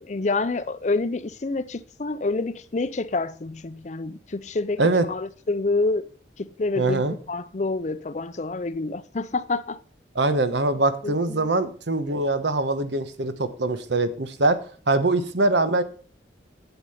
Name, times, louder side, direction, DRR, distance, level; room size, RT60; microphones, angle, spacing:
voice 1, 0.0-4.8 5.1-6.1 6.4-9.8 11.0-11.5, left 3 dB, 40° left, 0.5 m, -28 dB
voice 2, 6.8-7.1 10.1-14.6 14.9-15.8, right 2 dB, 75° right, 1.1 m, -23 dB
8.2 x 8.1 x 5.6 m
head